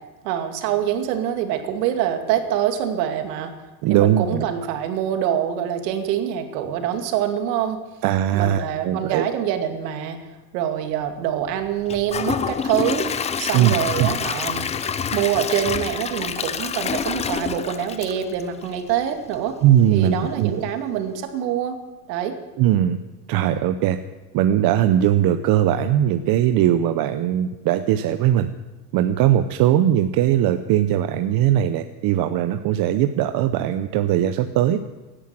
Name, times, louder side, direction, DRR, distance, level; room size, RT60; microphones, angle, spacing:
voice 1, 0.2-3.5 3.9-7.8 8.3-10.2 10.5-13.1 13.4-14.7 15.1-19.6 19.9-21.8 22.1-22.3, right 9 dB, 75° right, 6 dB, 2.4 m, -25 dB
voice 2, 3.8-4.4 8.0-9.3 13.5-14.1 19.6-20.6 22.6-23.0 23.3-24.0 24.3-28.5 28.9-34.8, right 11 dB, 45° right, 9 dB, 0.8 m, -19 dB
Gurgling / Toilet flush / Trickle dribble, 11.9-18.9 19.3-19.4 19.9-20.0, left 6 dB, 15° left, 0.4 m, -27 dB
17.0 x 10.0 x 7.6 m, 1.1 s
supercardioid pair, 125°, 50 cm